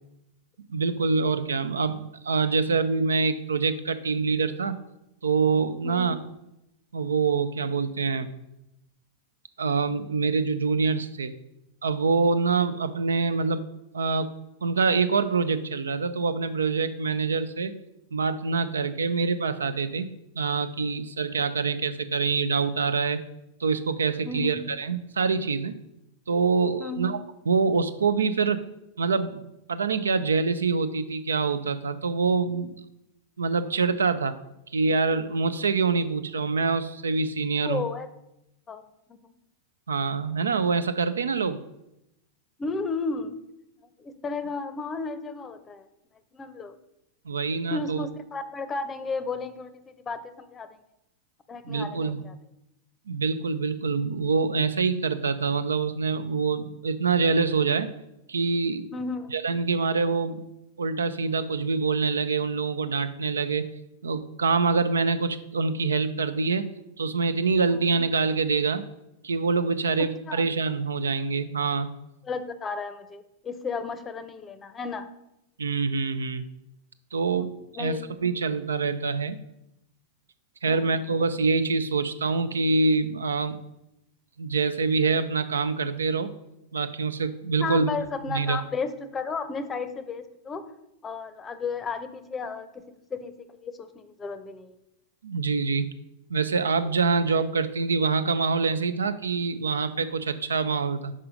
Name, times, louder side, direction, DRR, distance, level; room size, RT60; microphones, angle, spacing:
voice 1, 0.7-4.8 5.2-6.2 6.9-8.3 9.6-11.3 11.8-13.7 13.9-14.3 14.6-17.7 18.1-20.1 20.4-23.2 23.6-25.8 26.3-27.2 27.5-28.6 29.0-32.8 33.4-34.3 34.7-37.8 39.9-41.6 47.3-48.1 51.6-52.2 53.1-57.9 58.3-58.9 59.3-60.4 60.8-63.7 64.0-66.7 67.0-68.8 69.2-71.9 75.6-76.4 77.1-77.5 77.8-78.0 78.2-79.4 80.6-83.6 84.4-86.3 86.7-87.9 88.3-88.6 95.2-95.9 96.3-101.1, right 4 dB, 90° right, 13 dB, 0.5 m, -25 dB
voice 2, 24.2-24.7 26.8-27.1 37.6-38.1 38.7-39.3 42.6-43.3 44.0-45.9 46.3-46.8 47.7-50.8 51.5-52.3 58.9-59.3 67.7-67.8 70.0-70.4 72.2-75.1 77.8-78.0 80.7-80.9 87.6-90.7 91.0-93.3 93.6-94.8, left 4 dB, 20° left, 12 dB, 0.6 m, -33 dB
5.5 x 4.9 x 5.1 m, 0.87 s
hypercardioid pair, 105°, 0 cm